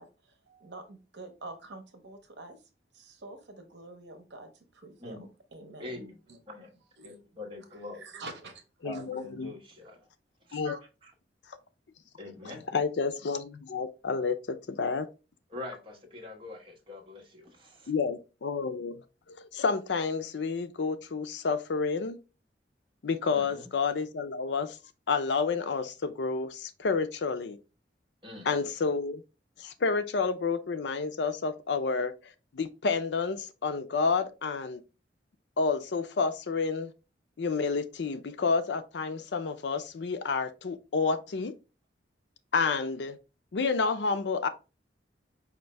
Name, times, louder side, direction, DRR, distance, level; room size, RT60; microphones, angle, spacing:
voice 1, 0.0-2.6 2.9-5.2 5.5-6.4 7.0-7.1 8.0-8.6 8.9-9.0, right 2 dB, 70° right, 0.9 m, -47 dB
voice 2, 5.8-6.2 6.5-6.7 7.0-8.0 8.8-10.1 10.4-11.1 12.2-12.6 15.5-17.9 23.3-23.7 28.2-28.6, left 2 dB, 30° right, 1.3 m, -44 dB
voice 3, 8.8-9.5 10.5-10.8 12.7-14.4 14.7-15.1 17.9-19.0 19.3-22.2 23.0-24.8 25.1-27.6 28.5-29.2 29.6-32.1 32.5-34.8 35.6-36.9 37.4-41.5 42.5-43.2 43.5-44.5, left 4 dB, 70° left, 0.5 m, -29 dB
5.1 x 2.6 x 3.2 m
head